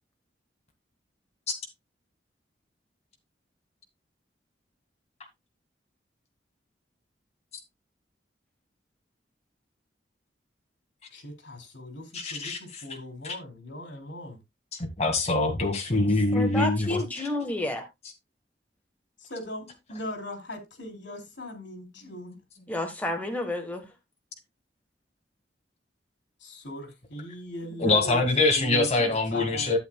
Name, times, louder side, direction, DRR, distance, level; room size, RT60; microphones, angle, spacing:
voice 1, 11.1-14.4 19.2-22.4 26.4-28.2 28.6-29.7, left 1 dB, 85° left, 3.2 m, -39 dB
voice 2, 12.1-12.6 13.2-13.3 15.0-17.0 27.8-29.8, left 2 dB, 40° left, 1.9 m, -24 dB
voice 3, 16.3-17.8 22.7-23.8, left 1 dB, 10° left, 1.4 m, -30 dB
12.5 x 7.9 x 2.3 m
head